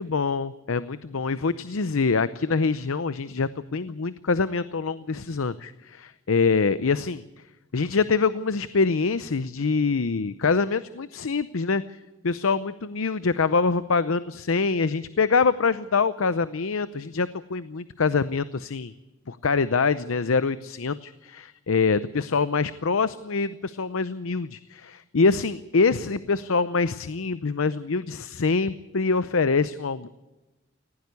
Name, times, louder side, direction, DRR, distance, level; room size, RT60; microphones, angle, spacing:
voice 1, 0.0-7.2 7.7-11.8 12.2-18.9 19.3-30.1, left 4 dB, 85° left, 14 dB, 0.7 m, -25 dB
19.0 x 16.5 x 8.3 m, 1.1 s
head